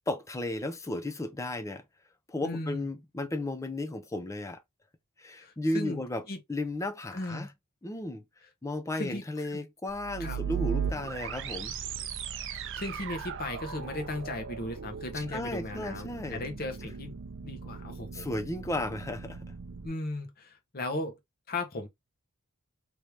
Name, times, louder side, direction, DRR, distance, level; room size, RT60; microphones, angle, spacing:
voice 1, 0.1-1.8 2.3-4.6 5.2-6.2 6.5-7.5 7.8-8.2 8.6-11.8 15.1-16.4 18.1-19.4, left 1 dB, 15° left, 0.5 m, -34 dB
voice 2, 2.4-2.9 5.4-6.4 7.1-7.5 9.0-9.2 9.5-9.6 10.2-10.4 12.7-17.1 17.4-18.3 19.8-21.2 21.5-21.9, left 2 dB, 45° left, 0.9 m, -36 dB
sound 1, 9.9-19.9, right 7 dB, 60° right, 0.5 m, -38 dB
3.1 x 2.7 x 3.1 m
head